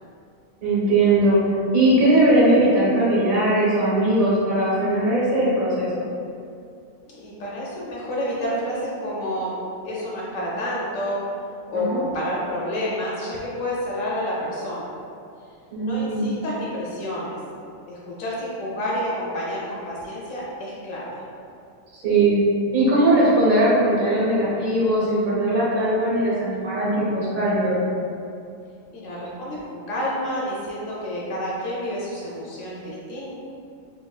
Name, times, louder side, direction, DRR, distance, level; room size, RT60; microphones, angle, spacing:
voice 1, 0.6-1.4 1.7-6.0 11.7-12.0 15.7-16.3 21.9-22.4 22.7-27.9, right 1 dB, 90° right, -8 dB, 1.5 m, -19 dB
voice 2, 7.1-9.6 9.8-11.2 11.7-15.0 15.8-17.4 17.9-21.1 28.9-33.4, equal, 75° left, -6 dB, 1.0 m, -29 dB
4.6 x 2.6 x 2.3 m, 2.5 s
omnidirectional pair, 1.4 m